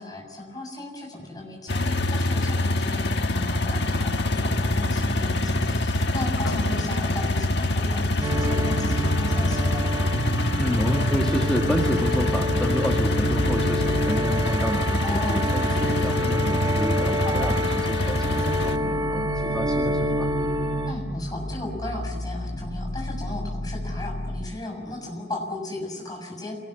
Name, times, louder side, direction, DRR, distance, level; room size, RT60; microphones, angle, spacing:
voice 1, 0.0-9.9 15.0-15.5 17.2-17.5 20.9-26.6, left 2 dB, 20° left, 0 dB, 7.2 m, -35 dB
sound 1, 1.7-18.8, left 2 dB, 70° left, 1.6 m, -25 dB
sound 2, 6.4-24.4, left 1 dB, 90° left, 4.5 m, -33 dB
sound 3, 8.2-20.9, equal, 20° right, 1.7 m, -28 dB
voice 2, 10.6-20.3, equal, 5° left, 1 dB, 1.8 m, -29 dB
27.5 x 19.5 x 9.8 m, 1.3 s
head